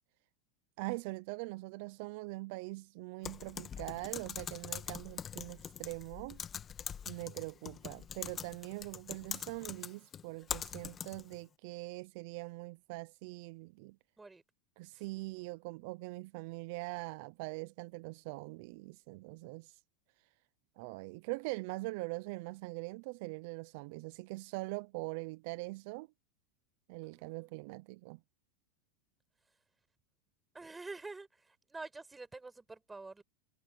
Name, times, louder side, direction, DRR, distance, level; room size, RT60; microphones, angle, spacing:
voice 1, 0.8-6.4 7.1-14.0 14.8-19.8 20.8-26.1 26.9-28.2, right 24 dB, 60° right, 0.5 m, -42 dB
Typing, 3.2-11.4, left 8 dB, 25° left, 1.3 m, -43 dB
voice 2, 27.0-27.5 30.5-33.2, right 3 dB, 10° right, 7.0 m, -48 dB
supercardioid pair, 130°, 0 cm